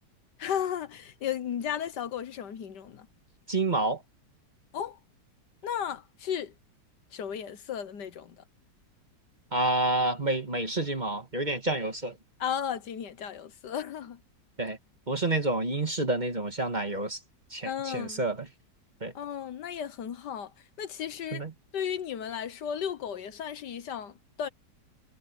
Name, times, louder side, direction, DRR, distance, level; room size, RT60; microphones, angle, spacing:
voice 1, 0.4-3.1 4.7-5.0 5.6-6.5 7.1-8.4 12.4-14.2 17.6-18.2 19.2-20.5 20.8-21.5 21.7-24.5, left 8 dB, 70° left, 1.6 m, -34 dB
voice 2, 3.5-4.0 9.5-12.1 14.6-14.8 15.1-17.2 17.5-18.4 19.0-19.1 21.3-21.5, right 2 dB, 25° right, 1.8 m, -28 dB
omnidirectional pair, 1.9 m